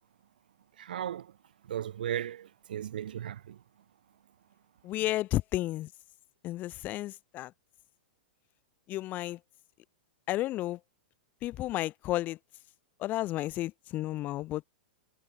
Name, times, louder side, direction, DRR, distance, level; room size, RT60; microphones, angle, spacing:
voice 1, 0.8-1.3 1.7-3.6, right 10 dB, 65° right, 2.0 m, -36 dB
voice 2, 4.8-5.9 6.4-7.5 8.9-9.4 10.3-10.8 11.4-12.4 13.0-14.6, left 16 dB, 35° left, 2.7 m, -32 dB
figure-of-eight pair, 105°, 5 cm